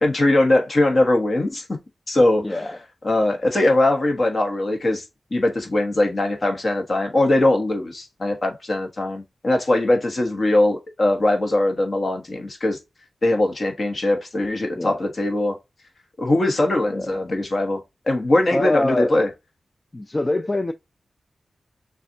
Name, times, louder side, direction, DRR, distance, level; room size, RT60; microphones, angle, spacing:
voice 1, 0.0-1.6 2.1-2.7 3.0-5.0 5.3-12.8 13.2-15.6 16.2-17.8 18.1-19.3, left 1 dB, 40° left, 1.3 m, -21 dB
voice 2, 2.4-2.8 14.8-15.0 16.9-17.1 18.5-19.1 19.9-20.7, left 2 dB, 20° left, 0.3 m, -24 dB
6.7 x 2.5 x 2.7 m
wide cardioid pair, 150°, 0 cm